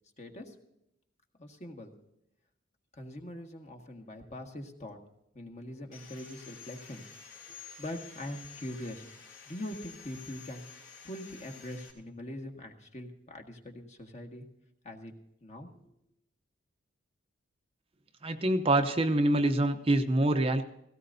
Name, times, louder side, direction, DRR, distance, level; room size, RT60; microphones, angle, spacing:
voice 1, 0.2-0.5 1.4-1.9 2.9-5.0 5.3-7.0 7.5-9.0 9.4-14.4 14.8-15.1 15.4-15.9, left 1 dB, 35° left, 3 dB, 1.6 m, -43 dB
Sawing, 5.9-11.9, left 6 dB, 70° left, 3.4 m, -50 dB
voice 2, 18.2-20.6, right 1 dB, 30° right, 6 dB, 0.7 m, -25 dB
17.5 x 16.5 x 2.7 m, 0.81 s
head